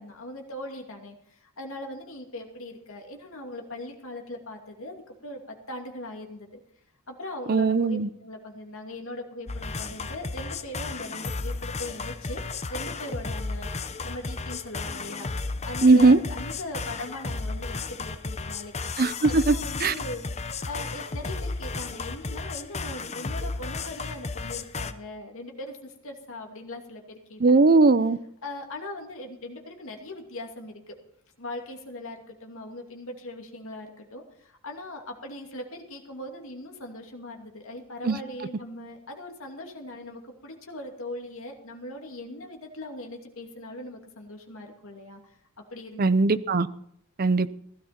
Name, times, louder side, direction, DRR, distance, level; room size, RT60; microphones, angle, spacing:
voice 1, 0.0-6.6 7.1-12.4 12.7-15.3 15.6-18.7 19.3-27.8 28.4-31.0 31.4-45.2 45.7-46.1, left 1 dB, 65° left, 2.6 m, -40 dB
voice 2, 7.5-8.1 15.8-16.2 19.0-19.5 19.8-19.9 27.4-28.2 38.0-38.2 46.0-46.7 47.2-47.6, right 3 dB, 40° right, 0.6 m, -19 dB
sound 1, 9.5-24.9, left 3 dB, 30° left, 0.7 m, -34 dB
16.0 x 12.5 x 4.4 m
head